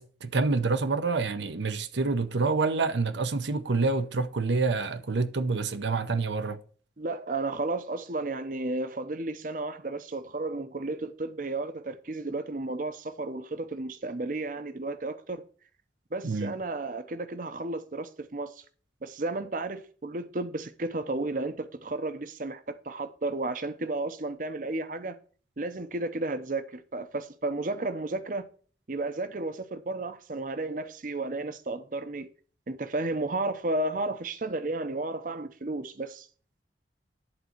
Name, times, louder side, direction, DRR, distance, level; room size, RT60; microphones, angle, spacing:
voice 1, 0.0-6.6 16.2-16.5, right 3 dB, 80° right, 0.7 m, -27 dB
voice 2, 7.0-15.4 16.1-18.6 19.0-25.2 25.6-28.5 28.9-32.3 32.7-36.3, right 2 dB, 45° right, 0.7 m, -33 dB
10.5 x 4.1 x 7.8 m
head